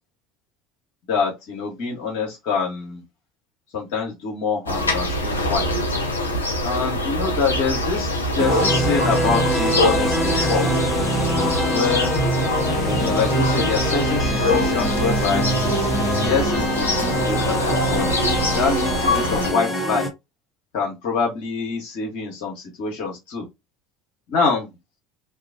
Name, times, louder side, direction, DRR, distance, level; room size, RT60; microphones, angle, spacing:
voice 1, 1.1-3.0 3.7-5.8 6.6-8.1 8.3-10.9 11.7-12.1 12.8-15.5 16.1-18.1 18.4-20.1 20.7-23.5 24.3-24.7, left 5 dB, 60° left, 0.9 m, -25 dB
sound 1, 4.7-19.5, left 1 dB, 90° left, 0.4 m, -24 dB
sound 2, 8.4-20.1, right 1 dB, 5° left, 0.7 m, -24 dB
2.4 x 2.3 x 2.4 m
figure-of-eight pair, 65°, 0 cm